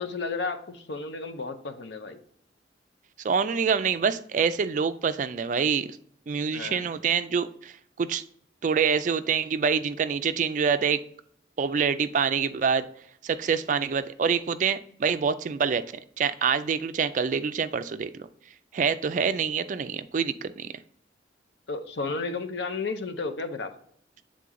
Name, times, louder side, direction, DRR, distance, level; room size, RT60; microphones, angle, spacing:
voice 1, 0.0-2.2 6.5-6.9 21.7-23.7, left 4 dB, 70° left, 0.7 m, -33 dB
voice 2, 3.2-6.0 6.3-8.2 8.6-11.0 11.6-12.9 13.2-15.8 16.2-18.3 18.7-20.7, right 6 dB, 45° right, 0.3 m, -26 dB
8.4 x 3.8 x 3.7 m
head